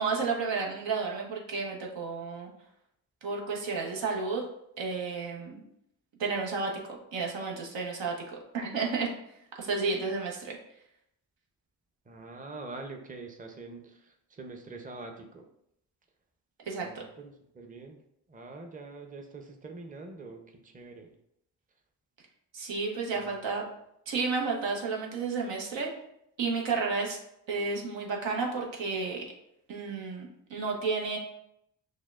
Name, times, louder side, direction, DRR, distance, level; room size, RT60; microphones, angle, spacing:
voice 1, 0.0-2.5 3.2-4.4 4.8-5.6 6.2-8.1 8.5-9.1 9.6-10.6 16.7-17.0 22.5-23.6 24.1-25.9 26.4-27.2 27.5-29.2 29.7-31.2, right 4 dB, 80° right, 0 dB, 0.9 m, -31 dB
voice 2, 12.1-15.4 16.8-18.0 18.3-21.1 23.1-23.3, right 3 dB, 20° right, 3 dB, 0.6 m, -45 dB
6.2 x 2.1 x 2.3 m, 0.76 s
cardioid pair, 50°, 44 cm